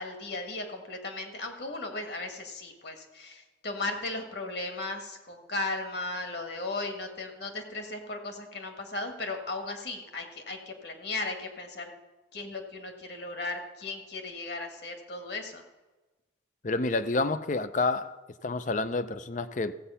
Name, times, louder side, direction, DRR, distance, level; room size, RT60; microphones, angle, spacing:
voice 1, 0.0-11.9 12.3-15.6, left 2 dB, 55° left, 1.8 m, -36 dB
voice 2, 16.6-18.2 18.4-19.7, left 3 dB, 40° left, 0.5 m, -29 dB
15.5 x 7.9 x 5.6 m
head